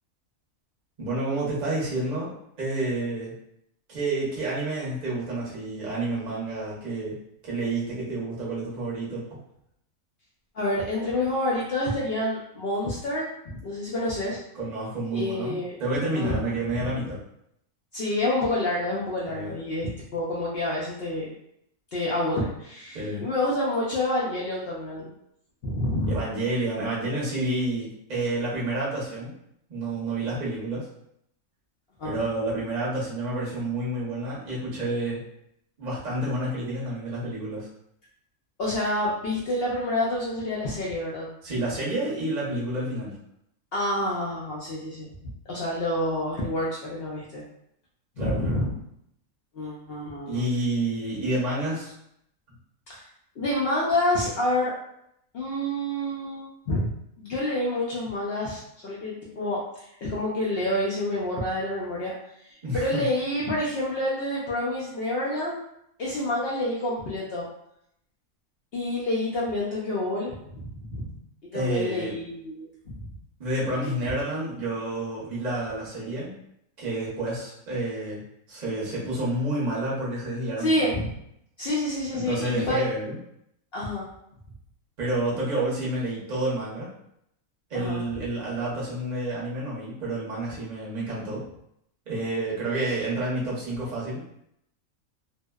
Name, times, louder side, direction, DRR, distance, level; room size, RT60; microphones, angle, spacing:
voice 1, 1.0-3.3 3.9-7.2 7.4-9.4 14.6-17.2 19.2-19.5 22.9-23.3 26.1-29.3 29.7-30.9 32.0-35.2 35.8-37.7 41.4-43.2 48.2-48.6 50.3-51.9 62.6-63.1 71.5-72.1 73.4-76.3 76.8-80.9 82.1-83.2 85.0-86.9 87.7-91.4 92.1-94.2, right 2 dB, 40° right, -6 dB, 0.7 m, -29 dB
voice 2, 10.5-14.4 15.1-15.8 16.1-16.9 17.9-21.3 21.9-25.1 25.6-26.2 32.0-32.1 38.6-41.3 43.7-45.1 45.5-47.4 48.2-48.8 49.5-50.4 52.9-53.0 53.4-54.7 55.3-65.6 66.0-67.4 68.7-71.2 71.5-73.1 73.8-73.9 80.6-81.2 81.6-82.8 83.7-84.1 87.7-88.0, left 1 dB, 65° left, -5 dB, 0.6 m, -28 dB
2.7 x 2.0 x 2.2 m, 0.74 s
omnidirectional pair, 1.5 m